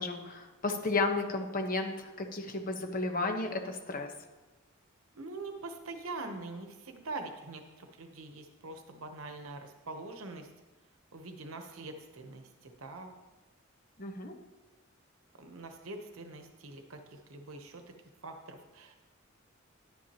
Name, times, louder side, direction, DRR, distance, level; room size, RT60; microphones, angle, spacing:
voice 1, 0.0-4.1 14.0-14.3, left 3 dB, 45° left, 4 dB, 1.1 m, -33 dB
voice 2, 5.1-10.5 11.1-13.1 15.4-17.9 18.2-19.0, right 3 dB, 90° right, 6 dB, 0.9 m, -44 dB
10.5 x 10.5 x 2.9 m, 1.2 s
head